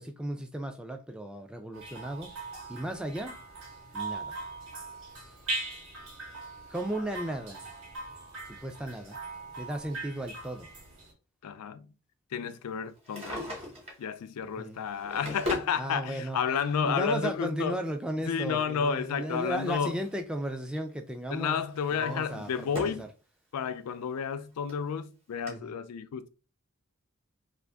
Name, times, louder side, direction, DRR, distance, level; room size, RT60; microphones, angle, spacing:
voice 1, 0.0-2.3 2.7-3.3 3.9-4.4 6.7-7.6 8.5-9.2 9.6-10.7 14.6-14.8 15.8-16.4 16.8-21.6 21.9-23.1 25.5-25.8, right 1 dB, 5° right, 0.3 m, -35 dB
sound 1, 1.7-11.1, right 3 dB, 65° right, 1.2 m, -40 dB
voice 2, 11.4-11.9 12.3-13.5 14.0-17.8 18.2-20.0 21.3-23.0 23.5-26.3, left 6 dB, 90° left, 0.4 m, -31 dB
Drawer open or close, 12.9-14.1 14.8-15.8 16.8-16.9 18.7-20.2 20.5-20.9 21.4-23.1 23.5-23.6 24.4-24.5 24.7-24.8 25.5-25.6, left 2 dB, 25° right, 1.1 m, -39 dB
2.5 x 2.5 x 3.4 m
head